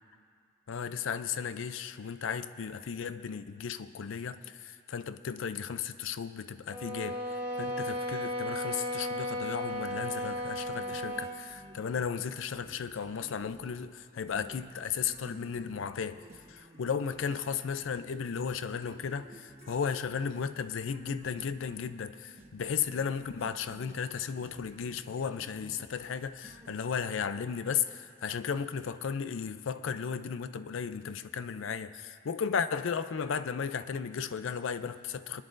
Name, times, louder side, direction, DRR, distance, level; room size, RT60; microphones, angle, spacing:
voice 1, 0.7-16.2 16.5-35.4, left 6 dB, 70° left, 0.4 m, -35 dB
sound 1, 6.7-11.4, equal, 10° right, 1.1 m, -35 dB
sound 2, 9.7-27.2, right 1 dB, 30° right, 1.1 m, -54 dB
23.0 x 10.5 x 2.6 m
head